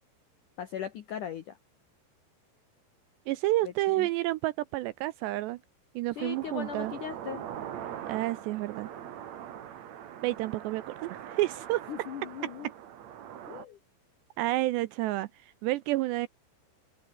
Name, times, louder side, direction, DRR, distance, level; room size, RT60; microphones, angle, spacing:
voice 1, 0.6-1.6 4.0-4.1 6.2-7.4 11.9-12.7 13.5-13.8, left 9 dB, 75° left, 1.9 m, -38 dB
voice 2, 3.3-5.6 6.0-6.9 8.0-8.9 10.2-11.8 12.4-12.7 14.4-16.3, right 17 dB, 80° right, 2.6 m, -30 dB
sound 1, 6.2-13.6, right 10 dB, 60° right, 1.8 m, -42 dB
open air
omnidirectional pair, 5.5 m